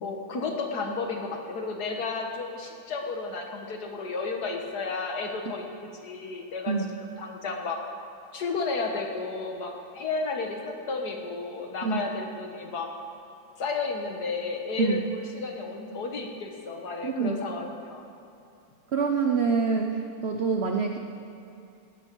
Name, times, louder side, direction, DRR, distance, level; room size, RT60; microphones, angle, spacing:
voice 1, 0.0-5.7 6.0-6.7 7.2-7.8 8.3-12.9 13.6-18.1, left 4 dB, 55° left, 2 dB, 1.8 m, -32 dB
voice 2, 14.8-15.1 17.0-17.4 18.9-21.0, right 5 dB, 75° right, 4 dB, 0.5 m, -26 dB
18.0 x 11.0 x 4.6 m, 2.7 s
omnidirectional pair, 2.1 m